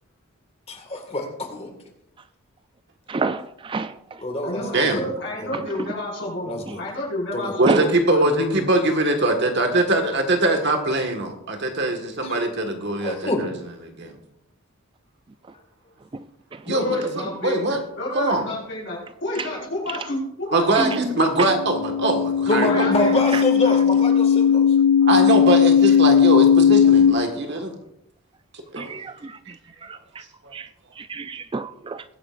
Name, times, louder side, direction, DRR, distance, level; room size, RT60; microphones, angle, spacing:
voice 1, 0.7-1.8 4.2-5.5 6.5-6.9 7.3-7.6 12.2-12.4 13.0-13.4 22.5-24.7, left 1 dB, 30° left, 1.9 m, -26 dB
voice 2, 3.1-3.4 3.7-3.9 7.7-7.8 28.8-29.1 30.5-30.6 31.1-32.0, right 4 dB, 25° right, 0.3 m, -26 dB
voice 3, 4.4-8.6 16.7-17.7 17.9-21.2 22.7-23.1, left 1 dB, 55° left, 5.1 m, -29 dB
voice 4, 7.6-13.5 13.9-14.1 16.7-16.8 17.1-17.8 18.1-18.4 20.5-22.9 25.1-27.7 28.7-28.9, right 2 dB, 50° right, 1.6 m, -22 dB
sound 1, 21.4-27.1, left 8 dB, 75° left, 0.9 m, -17 dB
21.5 x 10.0 x 2.5 m
head